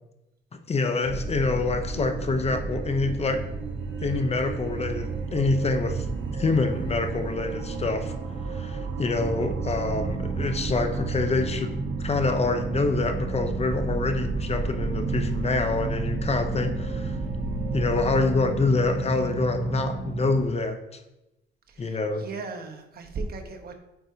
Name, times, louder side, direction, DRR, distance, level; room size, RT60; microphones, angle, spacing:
voice 1, 0.7-3.4 4.0-8.1 8.5-17.2 17.7-21.0 21.8-22.3, left 3 dB, 30° left, 7 dB, 0.7 m, -26 dB
sound 1, 1.0-20.4, right 4 dB, 90° right, 0.8 m, -31 dB
voice 2, 21.7-23.8, right 3 dB, 50° right, 4 dB, 1.0 m, -37 dB
8.0 x 4.6 x 2.7 m, 0.92 s
cardioid pair, 90°, 20 cm